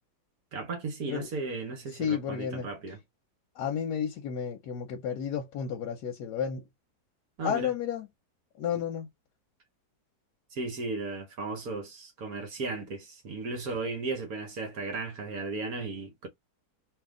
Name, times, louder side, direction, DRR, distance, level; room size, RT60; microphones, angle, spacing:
voice 1, 0.5-3.0 7.4-7.7 10.5-16.3, right 3 dB, 65° right, 1.4 m, -35 dB
voice 2, 1.9-2.7 3.6-6.6 7.4-8.1 8.6-9.1, left 8 dB, 85° left, 1.3 m, -32 dB
3.0 x 2.8 x 3.6 m
omnidirectional pair, 1.7 m